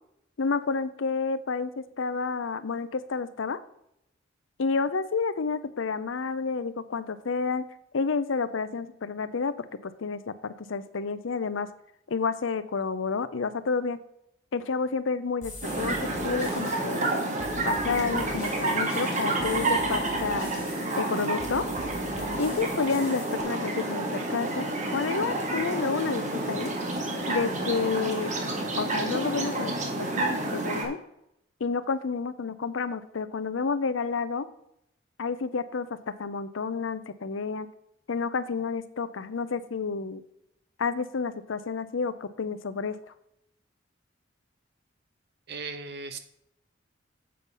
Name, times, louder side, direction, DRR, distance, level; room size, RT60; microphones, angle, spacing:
voice 1, 0.4-3.6 4.6-7.7 7.9-9.5 9.8-11.7 12.1-14.0 14.5-16.0 16.2-17.1 17.6-20.5 21.0-21.7 22.4-24.7 24.9-26.7 27.3-28.3 28.8-29.8 30.1-31.0 31.6-34.5 35.2-37.7 38.1-40.2 40.8-43.0, left 4 dB, 80° left, 14 dB, 0.6 m, -30 dB
sound 1, 15.4-23.4, left 1 dB, 40° left, 3.7 m, -43 dB
sound 2, 15.6-30.8, right 2 dB, 40° right, 1.7 m, -29 dB
voice 2, 45.5-46.2, right 4 dB, 55° right, 8 dB, 1.0 m, -37 dB
7.7 x 5.5 x 5.5 m, 0.79 s
head